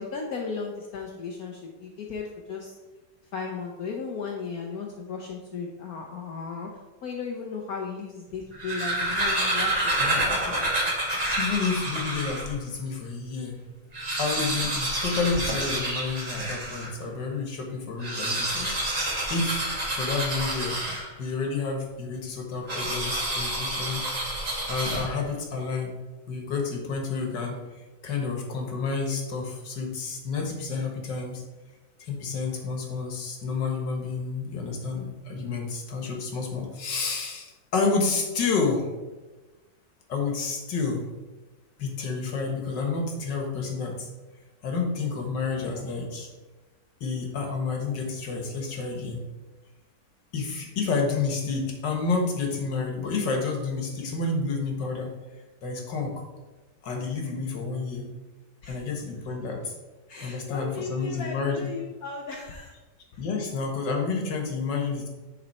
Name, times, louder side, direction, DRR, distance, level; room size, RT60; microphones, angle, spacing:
voice 1, 0.0-2.8 3.3-6.7 7.0-10.9 25.6-25.8 58.6-58.8 60.1-62.7 63.1-63.2, left 5 dB, 65° left, 0 dB, 1.2 m, -36 dB
sound 1, 8.4-12.6 13.1-13.2 13.4-13.5 13.8-17.0 17.9-21.4 22.7-25.4, right 1 dB, 25° right, 1.3 m, -28 dB
voice 2, 10.0-10.6 11.4-13.6 14.2-18.7 19.3-19.7 19.9-20.8 21.2-24.1 24.7-25.9 26.3-27.6 28.0-31.4 32.0-38.9 40.1-41.0 41.8-44.1 44.6-46.3 47.0-49.2 50.3-55.1 55.6-56.2 56.8-58.1 58.7-59.7 60.2-61.7 63.2-65.1, left 4 dB, 85° left, 1 dB, 2.0 m, -30 dB
9.9 x 4.1 x 4.2 m, 1.2 s
omnidirectional pair, 1.9 m